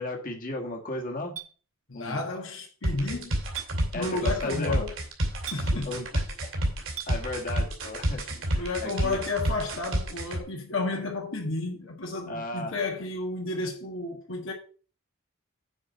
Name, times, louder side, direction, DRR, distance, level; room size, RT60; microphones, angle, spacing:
voice 1, 0.0-1.4 1.9-2.2 3.9-4.9 5.9-6.5 7.1-9.2 12.3-12.8, left 2 dB, 40° left, 1.8 m, -35 dB
Chink clink, 1.4-1.5 3.5-3.7 5.5-5.7 7.0-7.1, right 10 dB, 85° right, 1.3 m, -36 dB
voice 2, 1.9-3.4 3.9-4.9 5.5-6.0 8.5-14.5, left 3 dB, 60° left, 1.5 m, -32 dB
sound 1, 2.8-10.4, right 1 dB, 60° right, 2.8 m, -29 dB
9.7 x 4.6 x 6.7 m
head